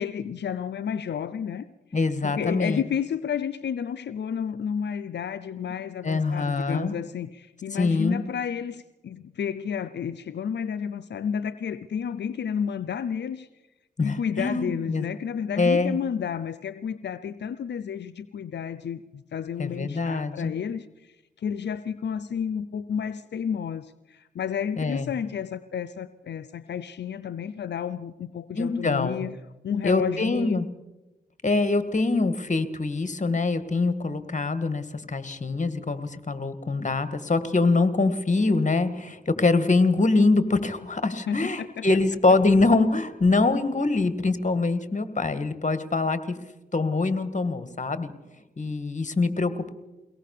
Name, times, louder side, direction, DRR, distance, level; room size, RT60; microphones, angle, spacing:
voice 1, 0.0-1.7 2.2-13.5 14.0-29.4 29.6-30.6 41.3-41.8, left 7 dB, 85° left, 15 dB, 0.6 m, -31 dB
voice 2, 1.9-2.8 6.0-7.0 7.7-8.2 14.0-15.0 15.6-16.0 19.6-20.5 24.8-25.1 28.6-29.3 29.8-30.7 31.4-46.4 46.7-48.1 48.6-49.7, left 3 dB, 45° left, 12 dB, 2.0 m, -24 dB
23.0 x 18.0 x 6.7 m, 1.1 s
cardioid pair, 45°, 17 cm